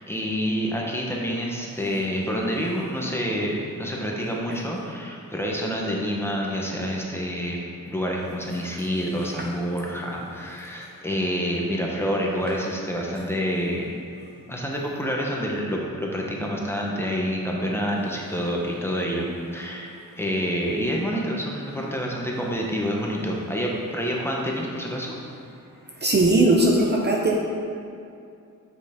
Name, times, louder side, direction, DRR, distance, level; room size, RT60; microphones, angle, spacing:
voice 1, 0.0-7.6 7.9-13.9 14.5-19.3 19.5-19.9 20.2-25.2, equal, 5° left, -2 dB, 1.0 m, -27 dB
voice 2, 26.0-27.4, right 2 dB, 30° right, -1 dB, 0.7 m, -19 dB
7.8 x 6.2 x 3.6 m, 2.5 s
wide cardioid pair, 120°, 33 cm